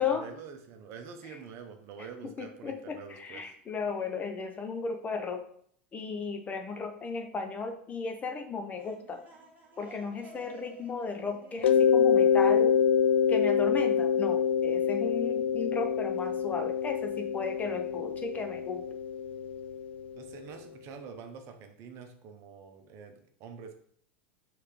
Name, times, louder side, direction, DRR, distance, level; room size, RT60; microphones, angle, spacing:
voice 1, 0.0-3.5 20.2-23.7, right 6 dB, 50° right, 5 dB, 0.8 m, -46 dB
voice 2, 2.4-5.4 5.9-9.2 9.8-12.8 13.3-18.8, left 5 dB, 25° left, 6 dB, 0.7 m, -35 dB
sound 1, 8.6-13.3, right 2 dB, 30° right, 1.5 m, -54 dB
Mallet percussion, 11.6-20.2, left 7 dB, 85° left, 0.3 m, -26 dB
4.8 x 3.4 x 3.1 m, 0.62 s
hypercardioid pair, 100°, 6 cm